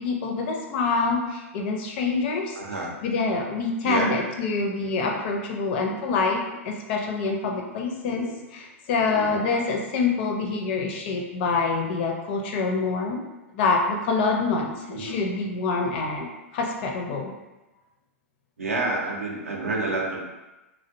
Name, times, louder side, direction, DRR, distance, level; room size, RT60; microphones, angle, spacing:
voice 1, 0.0-2.6 3.0-13.2 13.5-16.3 16.5-17.3, left 4 dB, 50° left, 1 dB, 0.4 m, -26 dB
voice 2, 2.5-3.0 3.8-4.2 5.0-5.1 5.8-6.0 7.5-7.6 8.0-8.3 8.9-9.4 14.9-15.2 18.6-20.4, right 3 dB, 80° right, -1 dB, 0.5 m, -30 dB
2.5 x 2.1 x 2.6 m, 1.0 s
figure-of-eight pair, 100°, 8 cm